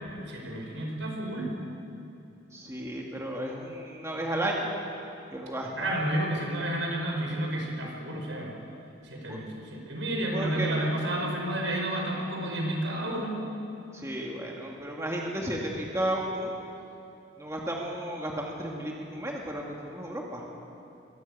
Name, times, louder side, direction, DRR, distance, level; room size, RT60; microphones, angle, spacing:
voice 1, 0.0-1.5 5.7-8.6 9.0-13.4, right 1 dB, 75° right, 0 dB, 4.9 m, -31 dB
voice 2, 2.5-4.7 5.3-5.7 9.3-9.4 10.3-10.7 13.9-16.5 17.4-20.4, right 1 dB, 15° right, -2 dB, 2.0 m, -33 dB
23.0 x 16.0 x 8.4 m, 2.8 s
head